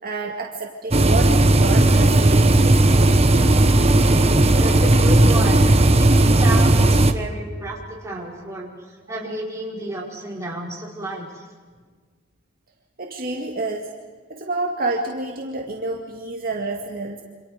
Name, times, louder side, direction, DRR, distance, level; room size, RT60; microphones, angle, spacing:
voice 1, 0.0-3.0 9.1-9.2 13.0-13.9 14.3-17.2, right 2 dB, 45° right, 0 dB, 2.2 m, -29 dB
sound 1, 0.9-7.1, right 2 dB, 30° right, 1.3 m, -15 dB
voice 2, 4.4-11.5, right 1 dB, 15° right, -3 dB, 5.3 m, -31 dB
28.5 x 26.5 x 5.2 m, 1.5 s
head